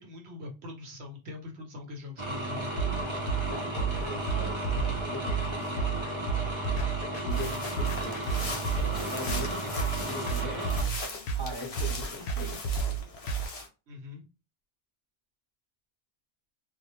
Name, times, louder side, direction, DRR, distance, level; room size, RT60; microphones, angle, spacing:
voice 1, 0.0-2.7 13.9-14.2, left 3 dB, 70° right, 1.0 m, -43 dB
sound 1, 2.2-10.8, right 1 dB, 35° right, 0.5 m, -34 dB
sound 2, 2.8-13.5, right 5 dB, 70° left, 0.8 m, -31 dB
voice 2, 3.5-5.8 7.2-10.8 11.4-12.6, left 2 dB, 10° left, 0.7 m, -41 dB
sound 3, 7.3-13.7, left 3 dB, 45° left, 0.5 m, -40 dB
2.4 x 2.0 x 2.9 m
omnidirectional pair, 1.2 m